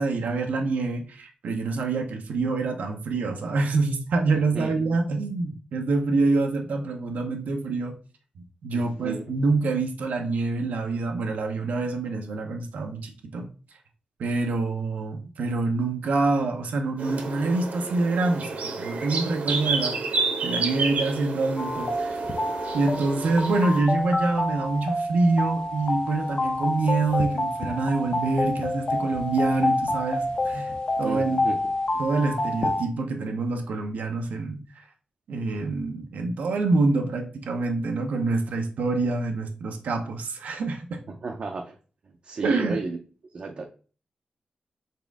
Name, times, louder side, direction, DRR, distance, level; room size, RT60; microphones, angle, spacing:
voice 1, 0.0-8.0 8.6-13.5 14.2-22.2 22.7-30.7 31.0-31.4 32.0-34.9 35.3-41.0 42.4-42.8, right 3 dB, 90° right, 0.7 m, -26 dB
voice 2, 4.3-4.7 8.7-9.2 31.0-31.7 41.1-41.8 42.2-43.0 43.3-43.7, right 4 dB, 45° right, 0.5 m, -33 dB
sound 1, 17.0-23.8, right 4 dB, 70° right, 1.0 m, -30 dB
sound 2, 21.6-32.9, left 1 dB, 40° left, 0.7 m, -28 dB
4.2 x 3.6 x 3.4 m
wide cardioid pair, 135°, 3 cm